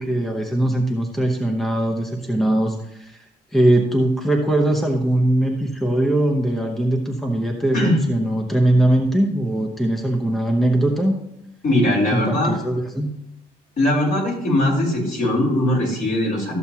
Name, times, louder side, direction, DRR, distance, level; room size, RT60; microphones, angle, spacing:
voice 1, 0.0-3.2 3.5-11.2 12.1-13.1, right 1 dB, ahead, 3 dB, 0.8 m, -20 dB
voice 2, 11.6-12.5 13.8-16.6, left 1 dB, 50° left, -2 dB, 3.9 m, -20 dB
13.5 x 6.9 x 2.9 m, 0.85 s
cardioid pair, 110°, 17 cm